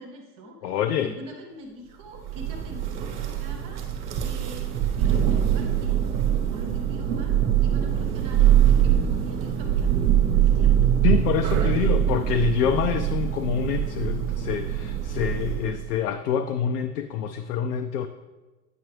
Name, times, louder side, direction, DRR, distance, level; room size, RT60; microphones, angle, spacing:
voice 1, 0.0-3.1 3.4-3.8 4.2-6.0 6.5-10.8 11.5-11.9, equal, 15° right, 1 dB, 0.3 m, -43 dB
voice 2, 0.6-1.1 11.0-18.1, left 8 dB, 70° left, 6 dB, 0.6 m, -26 dB
Thunder, 2.2-15.9, right 10 dB, 40° right, 1.1 m, -23 dB
9.3 x 5.6 x 3.2 m, 1.2 s
hypercardioid pair, 125°, 48 cm